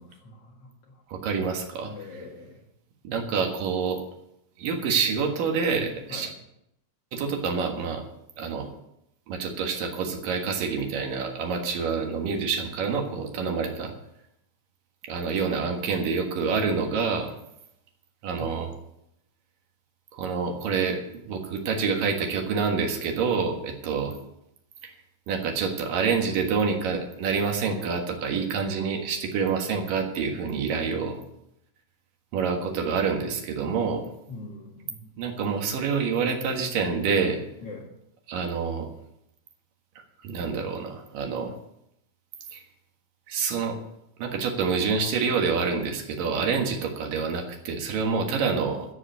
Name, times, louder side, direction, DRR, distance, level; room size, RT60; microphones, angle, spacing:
voice 1, 0.0-1.0 1.8-2.6 6.1-6.3 18.4-18.6 34.3-35.2 37.6-37.9 46.5-46.8, left 3 dB, 60° left, -1 dB, 1.6 m, -43 dB
voice 2, 1.1-2.2 3.0-4.0 4.6-6.3 7.1-8.0 8.4-8.7 9.3-13.9 15.1-17.3 18.2-18.7 20.1-24.1 24.8-24.9 25.3-31.2 32.3-34.0 35.2-37.4 38.3-38.9 40.2-41.5 42.5-42.6 43.3-43.8 44.2-48.9, right 5 dB, 60° right, 3 dB, 2.5 m, -27 dB
14.5 x 5.0 x 9.4 m, 0.79 s
omnidirectional pair, 5.5 m